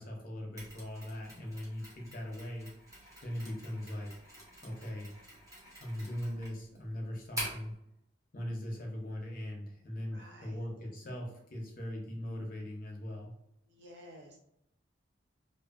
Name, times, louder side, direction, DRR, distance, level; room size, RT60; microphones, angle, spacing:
voice 1, 0.0-2.7 3.2-4.1 4.6-5.1 5.8-7.7 8.3-13.3, left 1 dB, 45° left, 0 dB, 0.6 m, -40 dB
Mechanisms, 0.6-7.7, equal, 15° right, 0.8 m, -46 dB
voice 2, 10.1-10.6 13.7-14.4, equal, 65° right, 0 dB, 0.7 m, -53 dB
2.5 x 2.5 x 2.4 m, 0.80 s
head